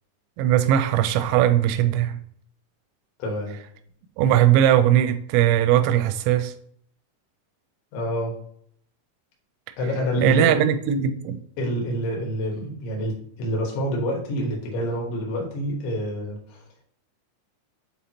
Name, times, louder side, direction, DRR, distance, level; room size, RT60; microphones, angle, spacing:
voice 1, 0.4-2.2 4.2-6.5 10.2-11.4, right 11 dB, 85° right, 9 dB, 3.1 m, -19 dB
voice 2, 3.2-3.6 7.9-8.4 9.8-10.6 11.6-16.6, equal, 70° left, -1 dB, 3.6 m, -27 dB
9.5 x 3.5 x 2.9 m, 0.64 s
omnidirectional pair, 5.7 m